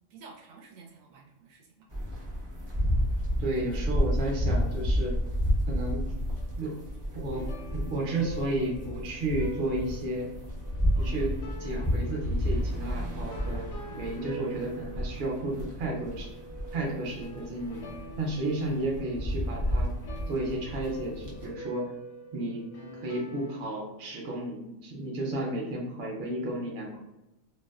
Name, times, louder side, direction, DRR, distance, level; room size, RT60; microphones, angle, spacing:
voice 1, 0.1-1.9 3.6-4.0, right 4 dB, 85° right, -1 dB, 1.0 m, -52 dB
sound 1, 1.9-21.5, equal, 40° right, 0.3 m, -31 dB
voice 2, 3.4-5.1 5.7-6.0 6.6-6.8 7.1-10.3 11.0-11.3 11.6-13.7 14.0-16.3 16.7-17.8 18.2-19.9 20.3-21.9 22.3-22.6 23.0-27.0, right 1 dB, 55° right, -1 dB, 0.8 m, -32 dB
sound 2, 6.4-23.8, equal, 85° left, 1.0 m, -45 dB
2.6 x 2.1 x 2.3 m, 0.95 s
omnidirectional pair, 1.4 m